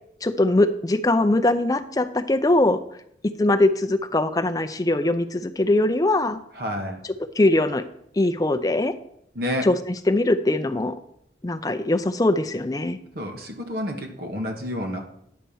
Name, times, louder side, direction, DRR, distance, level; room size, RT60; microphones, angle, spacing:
voice 1, 0.2-2.8 3.4-6.4 7.4-7.8 8.2-8.9 9.6-11.0 11.4-13.0, left 2 dB, 20° left, 10 dB, 0.5 m, -21 dB
voice 2, 6.5-7.0 9.3-9.7 13.1-15.0, equal, 55° right, 3 dB, 1.4 m, -29 dB
10.5 x 4.4 x 7.0 m, 0.73 s
head